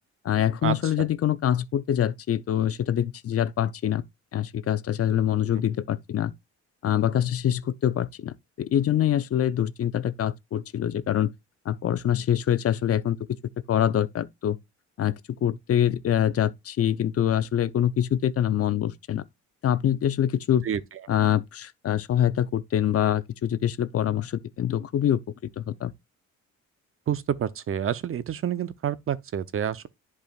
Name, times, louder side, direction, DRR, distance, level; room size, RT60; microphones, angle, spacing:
voice 1, 0.2-4.0 4.3-6.3 6.8-11.3 11.7-13.2 13.7-14.6 15.0-15.1 15.4-19.2 19.6-20.7 21.1-25.2 25.6-25.9, left 10 dB, 50° left, 0.7 m, -25 dB
voice 2, 27.1-29.9, right 9 dB, 45° right, 0.8 m, -28 dB
10.5 x 4.8 x 2.4 m
cardioid pair, 90°, 30 cm